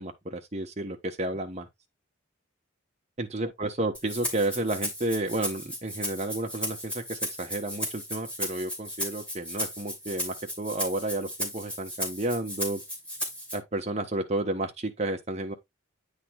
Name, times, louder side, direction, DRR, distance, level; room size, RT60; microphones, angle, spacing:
voice 1, 0.0-1.7 3.2-12.8 13.5-15.5, right 2 dB, 35° right, 1.3 m, -31 dB
Rattle (instrument), 3.9-13.5, equal, 5° left, 2.6 m, -35 dB
9.4 x 3.8 x 3.6 m
head